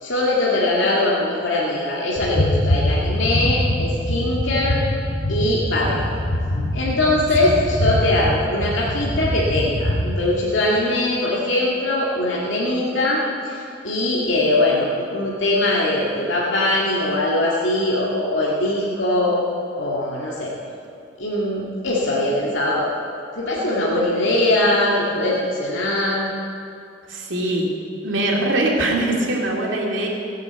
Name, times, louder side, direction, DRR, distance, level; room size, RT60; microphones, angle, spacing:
voice 1, 0.0-4.8 5.3-6.1 6.7-19.4 19.8-20.5 21.2-22.9 23.4-26.3, left 1 dB, 90° left, -5 dB, 2.2 m, -21 dB
sound 1, 2.2-10.2, left 1 dB, 65° left, 2.7 m, -23 dB
voice 2, 27.1-27.7 28.0-30.1, right 1 dB, 90° right, -2 dB, 2.7 m, -22 dB
17.5 x 8.1 x 8.0 m, 2.5 s
head